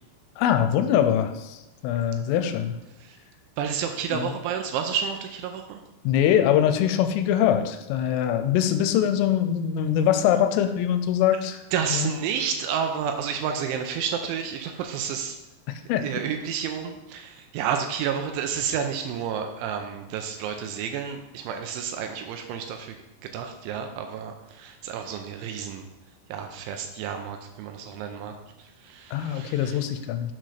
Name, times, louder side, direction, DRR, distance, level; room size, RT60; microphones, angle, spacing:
voice 1, 0.4-1.6 1.8-2.8 4.1-4.3 6.0-11.6 11.9-12.1 15.9-16.1 29.1-30.3, left 10 dB, 85° left, 9 dB, 3.2 m, -23 dB
voice 2, 3.6-5.8 11.7-15.4 16.0-23.0 23.2-25.8 26.3-29.8, right 7 dB, 80° right, 5 dB, 2.8 m, -30 dB
7.5 x 5.2 x 5.7 m, 0.97 s
omnidirectional pair, 5.8 m